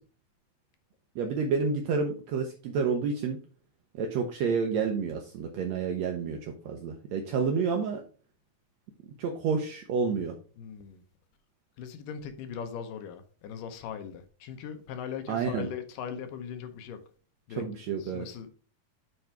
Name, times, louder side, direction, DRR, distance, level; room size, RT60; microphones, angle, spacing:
voice 1, 1.1-3.4 3.9-8.0 9.2-10.3 15.3-15.7 17.5-18.3, right 5 dB, 90° right, 1.5 m, -29 dB
voice 2, 10.6-11.0 11.8-17.0 17.5-17.7 18.0-18.5, left 7 dB, 75° left, 2.3 m, -39 dB
8.9 x 3.9 x 4.5 m
omnidirectional pair, 4.1 m